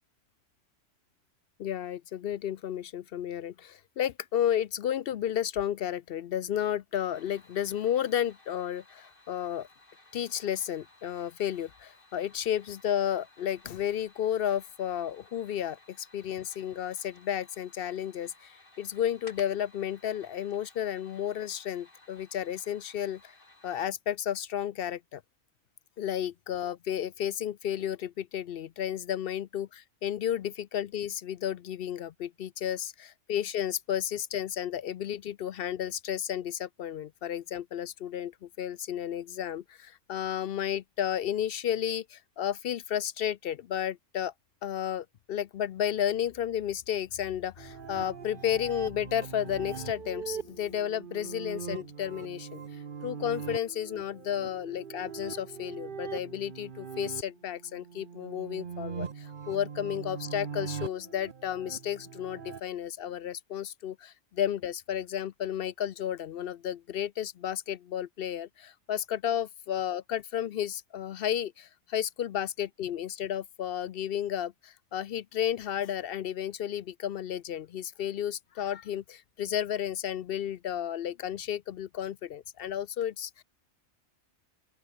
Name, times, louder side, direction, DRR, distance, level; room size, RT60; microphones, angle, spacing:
voice 1, 1.6-9.7 10.1-23.3 23.6-25.2 26.0-44.3 44.6-83.4, left 10 dB, 65° left, 0.6 m, -32 dB
sound 1, 7.1-23.9, left 2 dB, 40° left, 3.7 m, -58 dB
sound 2, 47.6-62.6, right 6 dB, 45° right, 1.0 m, -41 dB
open air
omnidirectional pair, 1.4 m